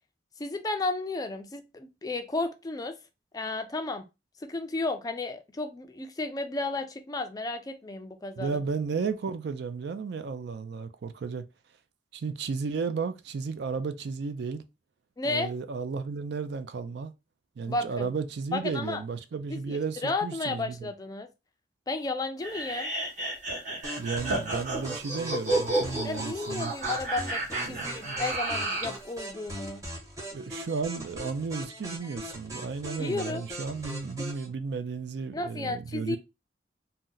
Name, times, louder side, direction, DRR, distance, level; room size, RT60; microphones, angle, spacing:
voice 1, 0.4-3.0 3.3-4.0 4.4-8.6 15.2-15.6 17.7-18.1 18.5-19.0 19.5-21.3 21.9-22.9 26.0-29.8 33.0-33.4 35.3-36.2, left 3 dB, 20° left, 0.3 m, -33 dB
voice 2, 8.4-11.4 12.1-14.6 15.2-17.1 17.6-20.9 24.0-26.7 27.7-28.2 30.3-36.2, right 5 dB, 65° right, 0.4 m, -33 dB
sound 1, 22.4-29.0, right 2 dB, 40° right, 1.2 m, -31 dB
sound 2, 23.8-34.5, right 1 dB, 20° right, 0.9 m, -40 dB
2.7 x 2.1 x 3.7 m
head